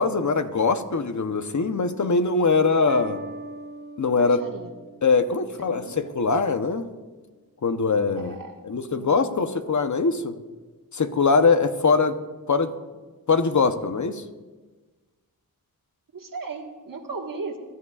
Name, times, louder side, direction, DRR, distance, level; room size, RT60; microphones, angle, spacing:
voice 1, 0.0-3.2 4.0-4.4 5.0-6.9 7.6-8.4 8.6-10.3 10.9-12.1 12.5-12.7 13.3-14.2, left 4 dB, 55° left, 8 dB, 0.9 m, -22 dB
sound 1, 2.9-5.7, right 3 dB, 30° right, 0.5 m, -40 dB
voice 2, 4.1-4.7 5.7-5.9 8.2-9.3 16.1-17.6, right 4 dB, 65° right, 2 dB, 1.6 m, -37 dB
22.5 x 12.5 x 2.4 m, 1.3 s
wide cardioid pair, 110°, 36 cm